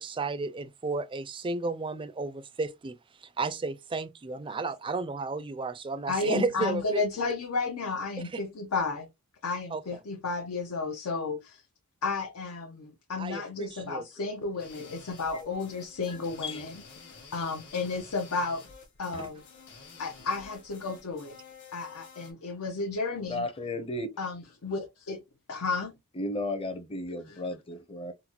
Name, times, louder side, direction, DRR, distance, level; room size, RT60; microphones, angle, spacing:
voice 1, 0.0-7.0 8.3-8.4 9.7-9.8 13.2-14.0 19.1-19.3, right 3 dB, 20° right, 0.3 m, -33 dB
voice 2, 6.1-9.1 9.4-11.6 12.0-16.8 17.3-18.6 19.0-19.4 20.0-21.4 21.7-23.5 24.2-25.2 25.5-26.0 27.3-27.4, left 3 dB, 80° left, 0.6 m, -32 dB
sound 1, 14.6-22.3, left 5 dB, 50° left, 1.2 m, -50 dB
voice 3, 23.3-24.1 26.2-28.1, left 2 dB, 25° left, 0.6 m, -34 dB
3.9 x 2.1 x 2.8 m
head